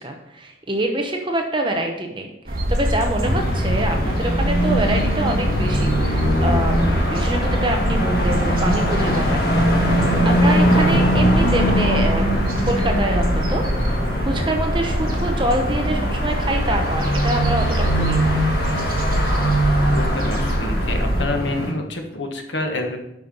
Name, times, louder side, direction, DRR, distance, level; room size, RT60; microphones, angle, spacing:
voice 1, 0.0-9.7 10.2-12.3 12.7-14.0 14.2-18.4, right 1 dB, 25° right, 3 dB, 0.9 m, -25 dB
sound 1, 2.5-21.2, equal, 55° right, 1.6 m, -24 dB
sound 2, 3.2-21.7, equal, 55° left, 1.8 m, -22 dB
voice 2, 19.9-23.0, left 2 dB, 90° left, 3 dB, 1.4 m, -27 dB
8.2 x 5.7 x 5.3 m, 0.85 s
head